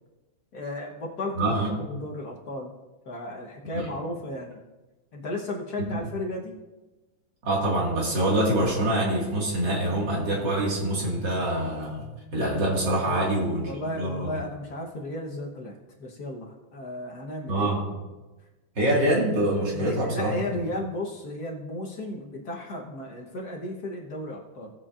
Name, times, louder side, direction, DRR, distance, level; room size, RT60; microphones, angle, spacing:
voice 1, 0.5-2.7 3.1-4.6 5.1-6.5 13.0-13.3 13.6-17.7 19.7-24.7, left 1 dB, 55° left, 0 dB, 1.5 m, -34 dB
voice 2, 1.3-1.7 3.7-3.9 7.4-14.4 17.5-17.9 18.8-20.6, right 1 dB, 60° right, -3 dB, 2.6 m, -25 dB
17.5 x 7.6 x 2.5 m, 1.1 s
omnidirectional pair, 2.2 m